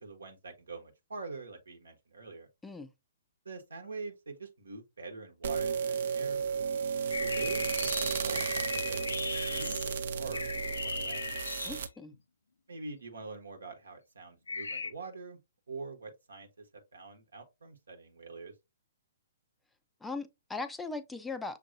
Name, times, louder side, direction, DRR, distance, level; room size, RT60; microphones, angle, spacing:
voice 1, 0.0-2.5 3.4-6.4 7.1-9.1 9.5-11.2 12.7-15.4 15.7-18.5, right 4 dB, 65° right, 1.0 m, -45 dB
sound 1, 5.4-11.9, right 6 dB, 50° right, 0.6 m, -33 dB
sound 2, 7.1-12.1 14.5-14.9, left 4 dB, 70° left, 0.4 m, -37 dB
voice 2, 11.6-12.1 20.0-21.6, left 3 dB, 5° left, 0.4 m, -39 dB
6.5 x 2.6 x 2.6 m
figure-of-eight pair, 120°, 0 cm